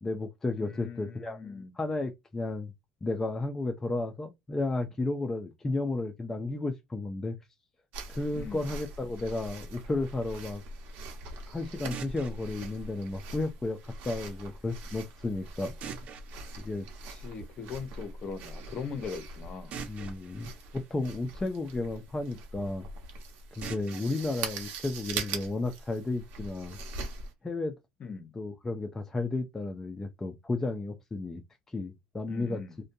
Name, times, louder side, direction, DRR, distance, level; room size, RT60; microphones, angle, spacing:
voice 1, 0.0-2.7 3.0-7.4 8.1-10.6 11.5-15.7 16.6-16.9 19.9-22.9 23.6-26.8 27.4-27.7 28.3-31.4 31.7-32.6, left 2 dB, 15° left, 0.4 m, -33 dB
voice 2, 0.5-1.7 8.3-8.6 17.1-19.8 28.0-28.3 32.3-32.8, left 5 dB, 40° left, 0.8 m, -40 dB
sound 1, 7.9-27.3, right 3 dB, 60° right, 0.9 m, -42 dB
sound 2, 11.9-13.9 15.8-17.8 19.7-21.9 23.6-25.6, right 7 dB, 45° right, 0.5 m, -47 dB
2.5 x 2.2 x 2.6 m
supercardioid pair, 120°, 3 cm